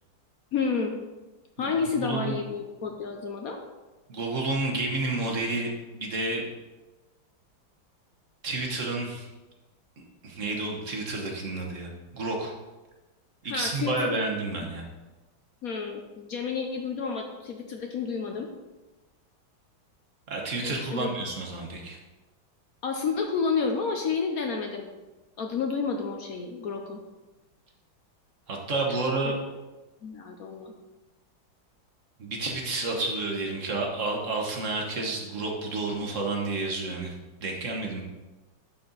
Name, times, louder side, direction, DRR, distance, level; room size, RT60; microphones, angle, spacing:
voice 1, 0.5-1.0 1.6-3.6 13.4-14.2 15.6-18.5 20.6-21.1 22.8-24.9 25.4-27.0 28.9-29.0 30.0-30.7, left 5 dB, 70° left, 3 dB, 0.8 m, -30 dB
voice 2, 2.0-2.4 4.1-6.4 8.4-9.3 10.2-12.5 13.4-14.8 20.3-22.0 28.5-29.3 32.2-37.1 37.4-38.0, right 3 dB, 45° right, 0 dB, 1.3 m, -30 dB
11.5 x 4.3 x 4.0 m, 1.1 s
omnidirectional pair, 2.3 m